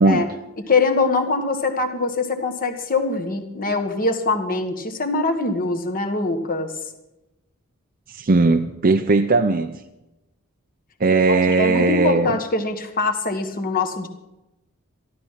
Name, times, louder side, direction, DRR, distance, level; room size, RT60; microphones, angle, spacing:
voice 1, 0.7-6.7 11.3-14.1, left 3 dB, 45° left, 6 dB, 1.6 m, -23 dB
voice 2, 8.1-9.8 11.0-12.4, right 3 dB, 45° right, 5 dB, 0.6 m, -18 dB
13.0 x 13.0 x 5.8 m, 0.94 s
head